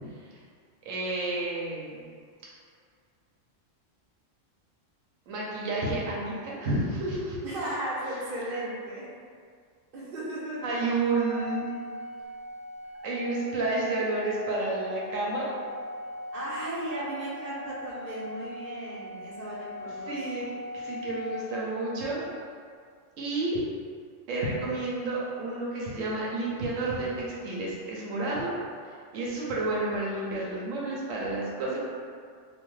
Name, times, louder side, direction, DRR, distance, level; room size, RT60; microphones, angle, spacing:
voice 1, 0.9-2.0 5.3-7.4 8.5-8.6 10.6-11.7 13.0-15.5 16.8-16.9 20.1-20.5 20.7-22.2 23.2-23.6 24.3-28.5 29.1-31.8, right 2 dB, 85° right, -5 dB, 1.0 m, -30 dB
voice 2, 7.4-9.1 9.9-10.7 16.3-20.2, right 1 dB, 50° right, -8 dB, 0.9 m, -35 dB
Organ, 11.3-22.1, left 1 dB, 60° left, 0.4 m, -40 dB
2.9 x 2.1 x 3.1 m, 2.1 s
omnidirectional pair, 1.3 m